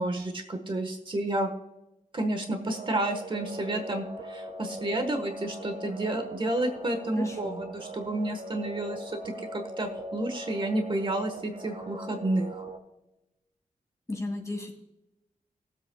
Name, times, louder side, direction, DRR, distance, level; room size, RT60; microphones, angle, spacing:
voice 1, 0.0-1.5 2.1-9.2 9.5-12.6, right 1 dB, 35° right, 6 dB, 1.2 m, -30 dB
sound 1, 2.6-12.8, right 1 dB, 60° right, 2.0 m, -40 dB
voice 2, 7.1-7.6 14.1-14.7, left 2 dB, 20° left, 2 dB, 2.2 m, -35 dB
21.0 x 7.9 x 2.3 m, 0.89 s
wide cardioid pair, 170°, 14 cm